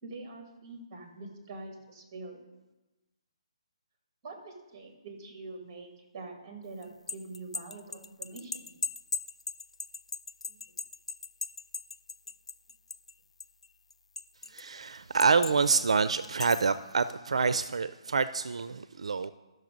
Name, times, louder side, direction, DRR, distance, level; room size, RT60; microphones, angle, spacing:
voice 1, 0.0-2.4 4.2-8.6 10.5-10.6, right 3 dB, 20° right, 4 dB, 1.6 m, -45 dB
sound 1, 6.8-13.1 13.4-14.6 15.2-15.8 16.2-16.8, left 4 dB, 75° left, 0.5 m, -38 dB
voice 2, 14.5-19.3, right 5 dB, 70° right, 14 dB, 0.4 m, -27 dB
12.0 x 6.4 x 5.1 m, 1.1 s
hypercardioid pair, 175°, 3 cm